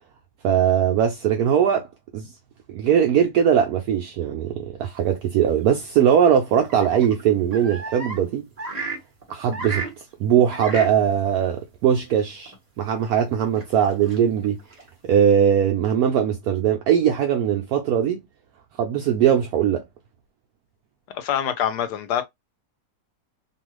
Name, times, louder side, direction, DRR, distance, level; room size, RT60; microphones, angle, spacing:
voice 1, 0.4-1.9 2.1-2.3 2.7-8.5 9.3-9.9 10.2-14.6 15.1-18.2 18.8-19.8, right 9 dB, 70° right, 1.0 m, -20 dB
sound 1, 5.1-5.2 6.7-8.2 8.6-9.9 10.5-10.9 11.3-11.4 12.5-12.6 13.5-14.9, right 3 dB, 30° right, 0.9 m, -33 dB
voice 2, 21.1-22.2, left 9 dB, 75° left, 1.2 m, -25 dB
3.0 x 2.4 x 3.0 m
omnidirectional pair, 1.8 m